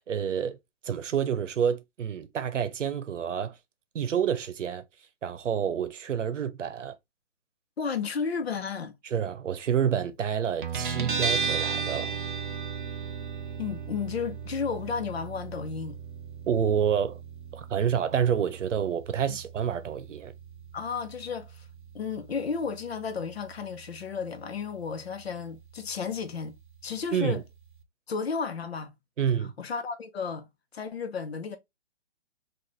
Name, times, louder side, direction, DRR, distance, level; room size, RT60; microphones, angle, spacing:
voice 1, 0.1-0.6 0.8-3.6 3.9-4.8 5.2-6.9 9.0-12.1 16.5-17.2 17.5-20.3 27.1-27.4 29.2-29.5, right 8 dB, 85° right, 0.8 m, -28 dB
voice 2, 7.8-9.0 13.6-16.0 20.7-21.7 21.9-26.6 26.8-27.4 28.1-28.9 29.6-30.5 30.7-31.6, left 5 dB, 55° left, 0.8 m, -33 dB
Guitar, 10.6-27.8, right 5 dB, 45° right, 0.4 m, -37 dB
4.0 x 2.5 x 3.1 m
hypercardioid pair, 175°, 36 cm